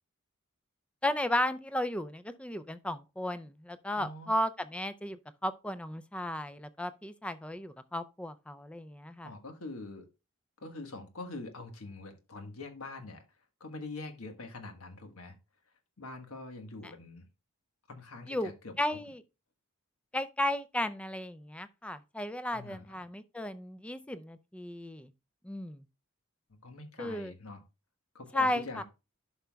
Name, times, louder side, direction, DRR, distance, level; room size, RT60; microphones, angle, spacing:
voice 1, 1.0-9.3 16.8-16.9 18.3-18.5 18.8-19.2 20.1-25.1 25.4-25.8 27.0-27.3 28.3-28.8, left 1 dB, 5° left, 0.4 m, -34 dB
voice 2, 4.0-4.3 9.2-10.1 10.6-13.2 13.6-15.3 16.0-17.3 17.9-18.7 22.5-23.0 26.5-27.6 28.1-28.8, left 2 dB, 85° left, 1.4 m, -44 dB
11.5 x 5.6 x 2.3 m
head